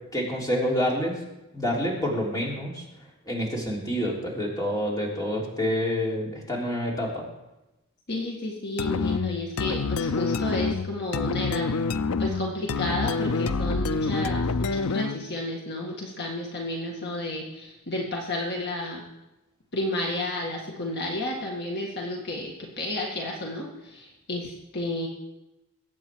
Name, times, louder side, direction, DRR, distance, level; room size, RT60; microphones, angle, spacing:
voice 1, 0.1-1.2 1.5-2.8 3.3-7.2, equal, 15° left, -3 dB, 3.4 m, -27 dB
voice 2, 8.1-11.7 12.2-19.0 19.7-25.1, left 1 dB, 50° left, -1 dB, 2.0 m, -31 dB
sound 1, 8.8-15.3, left 4 dB, 80° left, 0.6 m, -27 dB
22.5 x 8.8 x 4.7 m, 0.96 s
head